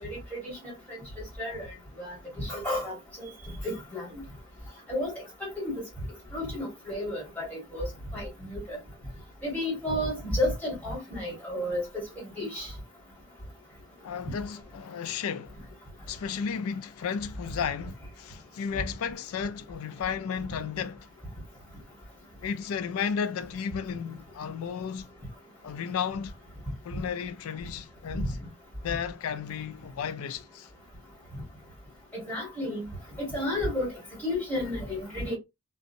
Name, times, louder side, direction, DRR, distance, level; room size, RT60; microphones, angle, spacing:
voice 1, 0.0-1.0 1.4-1.7 2.0-3.3 3.6-4.1 4.9-5.1 5.4-5.8 6.3-7.8 8.1-8.8 9.4-12.0 12.4-12.7 28.1-28.3 32.1-32.8 33.3-33.9 34.2-35.4, left 1 dB, 5° left, 1.5 m, -32 dB
voice 2, 14.0-15.6 16.1-21.1 22.4-25.1 25.6-26.3 26.8-28.4 28.8-30.7, left 7 dB, 75° left, 0.3 m, -33 dB
2.6 x 2.0 x 2.6 m
head